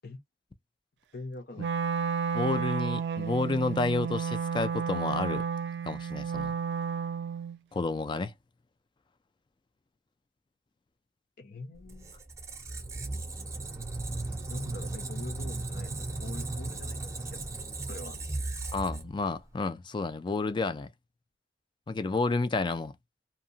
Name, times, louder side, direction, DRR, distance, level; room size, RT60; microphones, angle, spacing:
voice 1, 1.1-1.7 11.4-12.1 14.5-17.5 17.9-18.2, left 2 dB, 60° left, 0.7 m, -44 dB
Wind instrument woodwind instrument, 1.6-7.6, right 6 dB, 70° right, 0.3 m, -32 dB
voice 2, 2.3-5.4 5.9-6.6 7.7-8.3 18.7-20.9 21.9-23.0, left 3 dB, 25° left, 0.3 m, -30 dB
Squeak, 11.8-19.5, right 2 dB, 15° right, 0.6 m, -36 dB
2.8 x 2.2 x 2.7 m
head